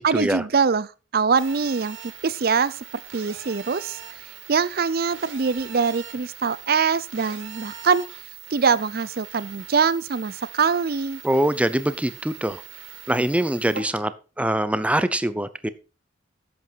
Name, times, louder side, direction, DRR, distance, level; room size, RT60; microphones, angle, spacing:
voice 1, 0.0-2.8 3.1-4.2 4.5-8.0 8.5-11.2, right 5 dB, 50° right, 0.5 m, -23 dB
Telephone, 1.4-13.8, right 8 dB, 80° right, 2.7 m, -41 dB
voice 2, 11.2-12.6 13.1-14.1 14.4-15.7, right 1 dB, 5° right, 0.7 m, -23 dB
11.0 x 8.2 x 4.6 m
head